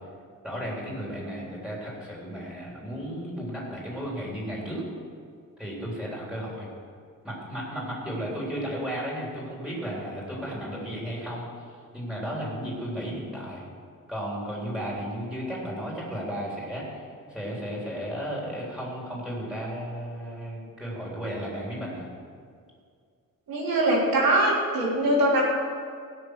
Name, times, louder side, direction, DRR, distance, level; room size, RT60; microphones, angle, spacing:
voice 1, 0.4-4.9 5.6-6.7 7.2-11.5 11.9-13.6 14.1-22.1, equal, ahead, -5 dB, 3.5 m, -34 dB
voice 2, 23.5-25.4, right 1 dB, 90° right, -5 dB, 3.6 m, -22 dB
16.5 x 6.3 x 6.5 m, 2.2 s
wide cardioid pair, 155°, 34 cm